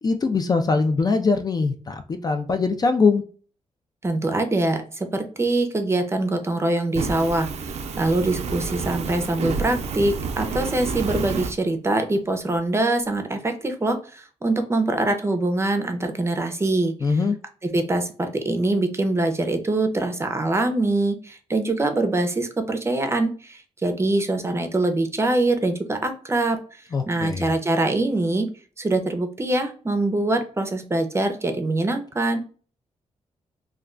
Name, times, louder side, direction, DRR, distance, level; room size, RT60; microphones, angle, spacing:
voice 1, 0.0-3.2 17.0-17.4 26.9-27.5, left 4 dB, 35° left, 7 dB, 0.4 m, -22 dB
voice 2, 4.0-16.9 17.7-26.6 27.1-28.5 28.8-32.4, right 2 dB, 25° right, 7 dB, 0.5 m, -24 dB
Fire, 6.9-11.5, right 5 dB, 70° right, 0.4 m, -29 dB
2.3 x 2.2 x 3.5 m, 0.40 s
cardioid pair, 95°, 12 cm